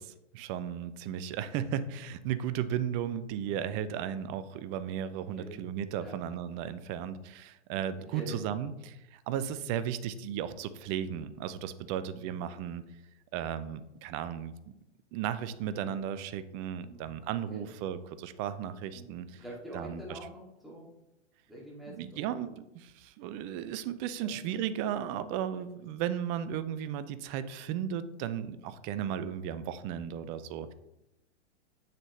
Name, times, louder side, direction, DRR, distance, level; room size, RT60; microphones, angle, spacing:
voice 1, 0.0-12.8 13.3-14.5 15.1-19.4 19.7-20.2 21.9-30.7, right 9 dB, 30° right, 13 dB, 0.5 m, -35 dB
voice 2, 19.4-20.9 21.5-22.3 24.2-24.6 25.0-25.1, right 1 dB, ahead, -6 dB, 2.5 m, -45 dB
7.3 x 6.5 x 3.2 m, 0.89 s
hypercardioid pair, 110°, 35 cm